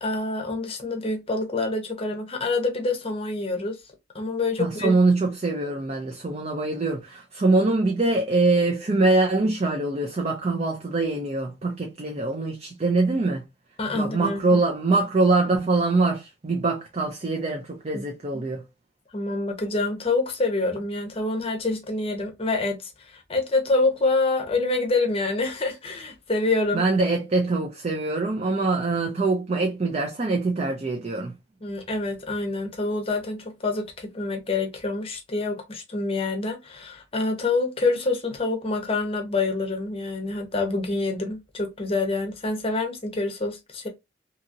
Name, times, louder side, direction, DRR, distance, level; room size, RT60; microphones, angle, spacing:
voice 1, 0.0-3.8 4.1-5.0 13.8-14.6 17.9-18.0 18.3-18.4 19.1-26.8 31.6-43.9, left 3 dB, 30° left, 0.7 m, -26 dB
voice 2, 4.6-13.5 13.9-18.7 26.7-31.3, right 3 dB, 30° right, 0.4 m, -23 dB
2.8 x 2.8 x 2.4 m
head